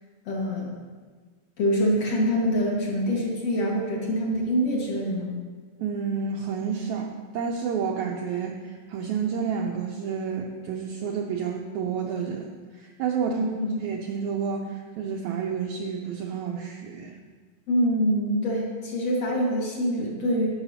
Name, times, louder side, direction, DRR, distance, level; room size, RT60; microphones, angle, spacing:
voice 1, 0.3-0.7 1.6-5.3 13.3-13.8 17.7-20.5, equal, 50° left, -3 dB, 2.3 m, -25 dB
voice 2, 5.8-13.5 13.8-17.2, right 6 dB, 80° right, 1 dB, 1.7 m, -30 dB
11.0 x 7.0 x 5.7 m, 1.5 s
omnidirectional pair, 4.0 m